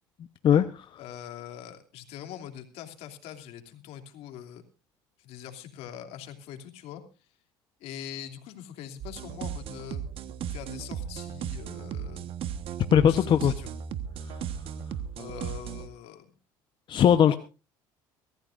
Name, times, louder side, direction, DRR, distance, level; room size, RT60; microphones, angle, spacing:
voice 1, 0.4-1.0 12.9-13.5 14.3-14.4 16.9-17.3, left 9 dB, 50° left, 9 dB, 1.0 m, -20 dB
voice 2, 1.0-4.6 5.2-7.0 7.8-10.0 10.5-12.3 13.0-13.7 15.2-16.3 17.2-17.4, left 10 dB, 70° left, 6 dB, 2.9 m, -42 dB
sound 1, 9.0-15.9, right 8 dB, 55° right, 1.4 m, -36 dB
23.5 x 14.5 x 2.6 m, 0.32 s
supercardioid pair, 80°, 11 cm